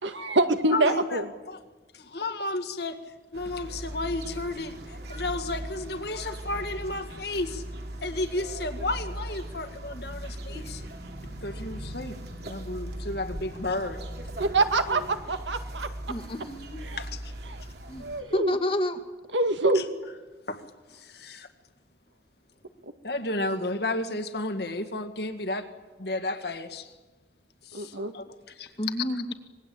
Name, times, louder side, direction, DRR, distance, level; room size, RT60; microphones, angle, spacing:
voice 1, 0.0-1.2 14.4-15.9 16.9-17.0 17.5-17.6 18.0-18.6 19.3-20.0 27.7-28.1, right 2 dB, 80° right, 1.9 m, -25 dB
voice 2, 0.7-1.6 1.9-3.0 3.3-7.6 8.0-10.8 11.4-14.0 17.0-17.3 19.7-19.9 20.5-20.6 20.9-21.5 23.0-25.7 26.0-26.9 27.6-28.7, left 2 dB, 60° left, 2.0 m, -33 dB
sound 1, 3.3-18.2, right 1 dB, 60° right, 3.1 m, -39 dB
voice 3, 16.1-17.0 17.9-18.0 18.3-19.0 28.8-29.3, left 1 dB, 30° left, 1.6 m, -29 dB
26.0 x 20.5 x 8.7 m
head